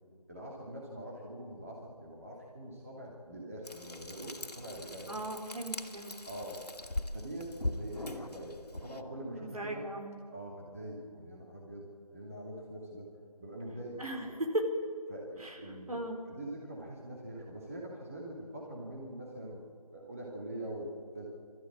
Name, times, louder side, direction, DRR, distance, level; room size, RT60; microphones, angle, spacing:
voice 1, 0.3-5.2 6.3-6.6 7.1-9.8 10.3-13.1 13.4-14.3 15.1-19.6 19.9-21.3, right 1 dB, 20° right, -3 dB, 2.5 m, -44 dB
Frying (food), 3.6-9.0, left 2 dB, 85° left, 2.2 m, -41 dB
voice 2, 5.1-6.1 9.4-10.2 14.0-14.6 15.4-15.6 15.9-16.2, right 1 dB, 65° right, 2 dB, 4.4 m, -37 dB
23.0 x 14.0 x 8.8 m, 2.2 s
figure-of-eight pair, 175°, 20 cm